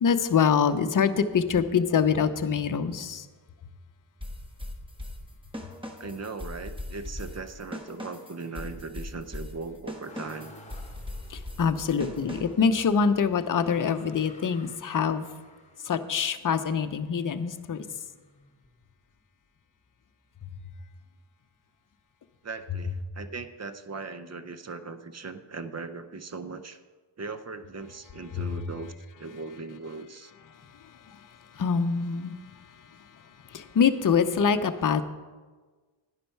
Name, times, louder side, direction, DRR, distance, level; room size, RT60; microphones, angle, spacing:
voice 1, 0.0-3.3 11.3-15.3 15.8-17.8 28.3-28.5 30.5-35.0, left 6 dB, 40° left, 9 dB, 0.7 m, -25 dB
sound 1, 4.2-12.7, left 1 dB, 10° right, 1.2 m, -40 dB
voice 2, 6.0-10.6 11.7-12.5 22.4-26.8 27.2-28.9 29.2-30.3, right 4 dB, 35° right, 11 dB, 0.6 m, -39 dB
Motor vehicle (road), 10.1-19.2 19.8-20.6 20.9-22.0 23.0-23.1, left 2 dB, 15° left, 1.3 m, -53 dB
11.0 x 9.8 x 4.6 m, 1.4 s
wide cardioid pair, 115°, 48 cm